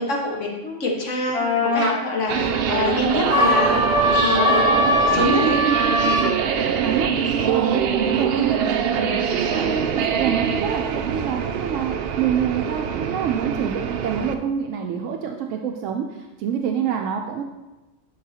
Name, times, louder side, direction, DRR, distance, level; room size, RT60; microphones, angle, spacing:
voice 1, 0.0-3.8 4.2-4.8 5.1-5.6, left 2 dB, 80° left, -1 dB, 1.7 m, -25 dB
sound 1, 1.3-2.0 3.3-6.3, left 1 dB, 30° left, 1.2 m, -20 dB
sound 2, 2.3-14.3, right 7 dB, 65° right, 0.7 m, -23 dB
voice 2, 6.2-17.4, right 8 dB, 90° right, 2 dB, 1.0 m, -27 dB
10.5 x 5.5 x 2.8 m, 1.1 s
omnidirectional pair, 1.3 m